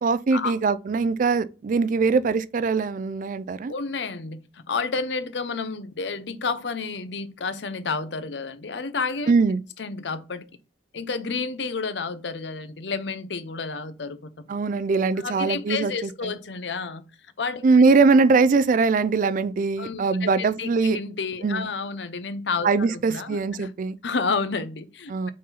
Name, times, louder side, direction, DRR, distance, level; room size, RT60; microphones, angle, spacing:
voice 1, 0.0-3.7 9.3-9.6 14.5-16.3 17.6-21.0 21.4-21.7 22.6-24.0 25.1-25.3, right 4 dB, 50° right, 0.4 m, -21 dB
voice 2, 3.7-9.3 9.8-10.6 10.9-14.3 15.2-17.0 17.4-17.6 19.8-23.7 24.0-25.3, left 4 dB, 80° left, 0.7 m, -30 dB
6.5 x 4.0 x 4.0 m
head